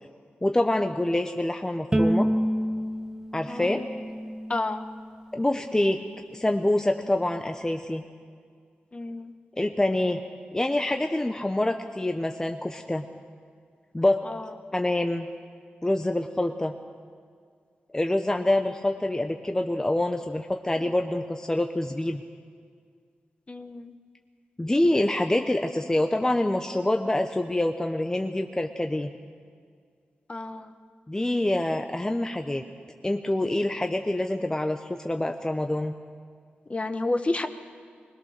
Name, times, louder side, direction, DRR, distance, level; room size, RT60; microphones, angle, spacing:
voice 1, 0.4-2.3 3.3-3.8 5.3-6.0 6.3-8.0 9.6-10.2 10.5-13.1 13.9-14.2 14.7-15.3 15.8-16.7 17.9-22.2 24.6-29.1 31.1-32.6 33.0-35.9, left 1 dB, 15° left, 5 dB, 0.9 m, -26 dB
Bowed string instrument, 1.9-5.1, equal, 15° right, 1.2 m, -28 dB
voice 2, 3.5-3.9 4.5-4.8 8.9-9.3 14.3-14.4 23.5-23.9 30.3-30.7 36.7-37.5, left 2 dB, 35° left, 9 dB, 1.2 m, -30 dB
21.5 x 20.0 x 6.6 m, 2.1 s
cardioid pair, 75°, 4 cm